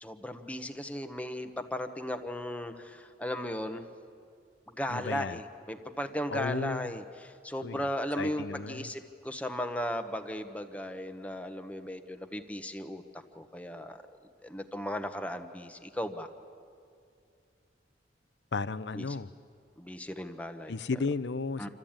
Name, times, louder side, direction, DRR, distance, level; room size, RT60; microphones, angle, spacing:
voice 1, 0.0-3.9 4.7-13.0 13.3-14.0 14.4-16.3 18.9-19.1 19.8-20.7 21.6-21.7, equal, 10° left, 7 dB, 1.0 m, -36 dB
voice 2, 4.9-5.4 6.3-6.9 7.6-7.9 8.2-8.9 18.5-19.3 20.7-21.7, left 4 dB, 70° left, 15 dB, 0.6 m, -34 dB
27.5 x 13.0 x 8.8 m, 2.4 s
head